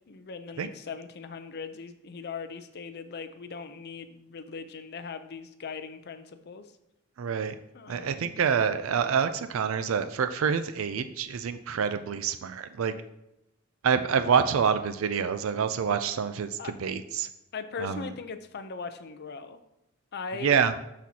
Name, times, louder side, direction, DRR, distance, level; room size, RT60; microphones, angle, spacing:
voice 1, 0.1-6.7 7.7-8.3 16.6-16.7 17.5-19.6 20.1-20.6, left 5 dB, 50° left, 9 dB, 0.6 m, -39 dB
voice 2, 7.2-7.6 7.9-12.9 13.8-17.3 17.8-18.1 20.4-20.7, right 6 dB, 70° right, 10 dB, 0.4 m, -27 dB
12.0 x 4.2 x 2.8 m, 0.88 s
head